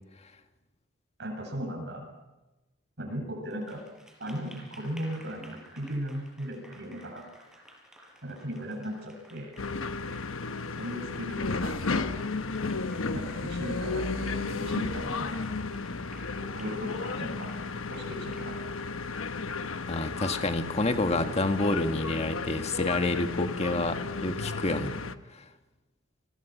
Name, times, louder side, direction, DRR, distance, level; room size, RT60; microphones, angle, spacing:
voice 1, 1.2-2.1 3.0-3.8 4.2-7.2 8.2-9.5 10.8-12.1 13.1-15.5 16.3-17.6 17.9-18.6, equal, 60° right, 1 dB, 7.7 m, -37 dB
Applause, 3.5-21.3, right 1 dB, 5° right, 5.7 m, -54 dB
sound 1, 9.6-25.1, left 4 dB, 85° left, 1.1 m, -33 dB
voice 2, 19.9-25.0 25.3-25.4, left 2 dB, 35° left, 7 dB, 1.7 m, -28 dB
30.0 x 22.0 x 6.1 m, 1.1 s
head